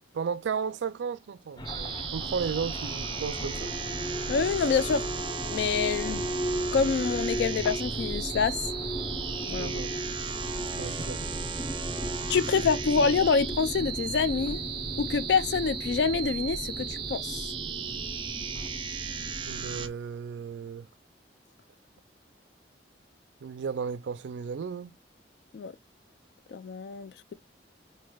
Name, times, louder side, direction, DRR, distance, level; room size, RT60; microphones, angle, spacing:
voice 1, 0.1-3.7 9.6-9.9 10.8-11.2 19.5-20.9 23.4-24.9, right 6 dB, 85° right, 0.4 m, -34 dB
sound 1, 1.6-19.9, equal, 25° left, 0.7 m, -36 dB
sound 2, 1.6-19.9, right 7 dB, 25° right, 0.5 m, -36 dB
voice 2, 4.3-5.0 5.5-6.2 6.7-8.7 9.4-9.7 10.8-11.0 12.3-14.6 15.0-17.5 25.5-25.7 26.5-27.3, left 5 dB, 70° left, 0.3 m, -27 dB
4.4 x 3.2 x 2.3 m
head